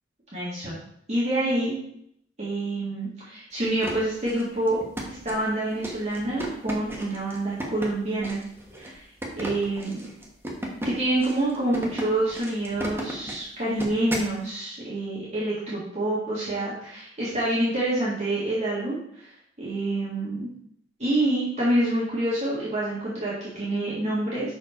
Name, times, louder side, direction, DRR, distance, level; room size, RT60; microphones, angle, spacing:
voice 1, 0.3-0.8 1.1-1.8 2.4-8.4 8.8-9.0 9.4-10.0 10.8-19.3 19.6-20.5 21.0-24.5, right 1 dB, 35° right, -8 dB, 1.9 m, -27 dB
sound 1, 3.6-14.3, right 1 dB, 15° right, 1.1 m, -35 dB
5.9 x 4.4 x 4.4 m, 0.69 s
head